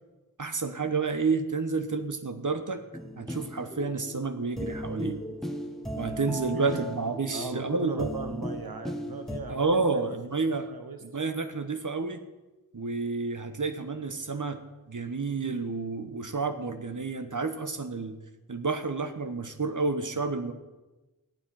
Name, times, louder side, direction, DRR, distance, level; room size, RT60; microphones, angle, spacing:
voice 1, 0.4-2.8 3.2-5.2 6.0-8.1 9.5-10.7 11.0-12.2 12.7-14.6 14.9-18.2 18.5-20.5, right 4 dB, 60° right, 9 dB, 1.2 m, -30 dB
sound 1, 2.9-9.4, equal, ahead, 1.4 m, -37 dB
voice 2, 6.5-6.8 7.3-10.2 10.7-11.0, right 4 dB, 80° right, 7 dB, 1.2 m, -38 dB
15.0 x 11.0 x 5.7 m, 1.1 s
wide cardioid pair, 55°, 35 cm